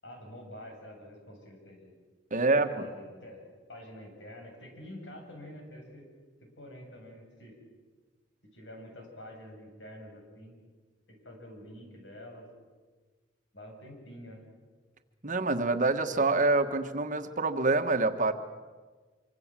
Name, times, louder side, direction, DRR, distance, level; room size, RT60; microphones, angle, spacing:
voice 1, 0.0-1.9 2.3-3.4 3.7-6.0 6.4-7.6 8.5-10.5 11.1-12.5 13.5-14.4, left 1 dB, 75° left, 2 dB, 7.5 m, -47 dB
voice 2, 2.3-2.9 15.2-18.3, right 3 dB, 45° right, 7 dB, 1.5 m, -26 dB
26.0 x 25.0 x 7.6 m, 1.4 s
head